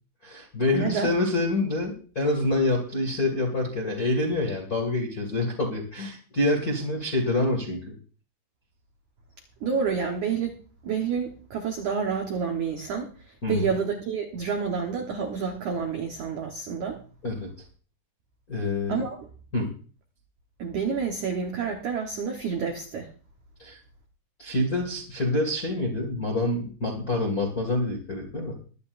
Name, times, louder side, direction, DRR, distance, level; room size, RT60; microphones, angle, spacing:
voice 1, 0.2-7.9 13.4-13.6 17.2-17.5 18.5-19.0 19.5-19.7 23.6-23.8 24.4-28.6, left 2 dB, 45° left, 1 dB, 1.1 m, -26 dB
voice 2, 0.7-1.1 9.6-10.6 10.8-17.0 18.9-19.2 20.6-23.1, right 6 dB, 75° right, 2 dB, 1.7 m, -29 dB
22.5 x 9.9 x 2.6 m, 0.39 s
omnidirectional pair, 5.4 m